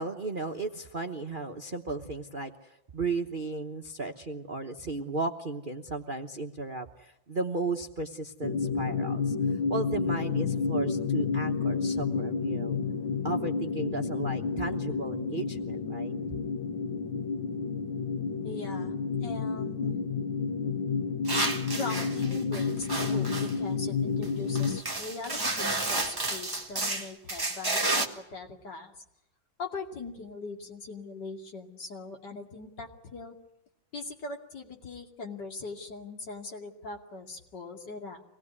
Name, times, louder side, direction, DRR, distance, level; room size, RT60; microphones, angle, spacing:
voice 1, 0.0-12.8 13.2-16.2, right 3 dB, 35° right, 4 dB, 1.0 m, -35 dB
sound 1, 8.4-24.8, left 5 dB, 80° left, 2.0 m, -30 dB
voice 2, 18.4-18.9 19.2-20.0 21.8-28.9 29.6-33.3 33.9-38.2, left 3 dB, 60° left, 2 dB, 3.1 m, -40 dB
sound 2, 21.3-23.5 24.2-24.3 24.6-28.1, right 2 dB, 10° right, 1.6 m, -31 dB
25.0 x 19.0 x 9.7 m, 0.85 s
omnidirectional pair, 2.1 m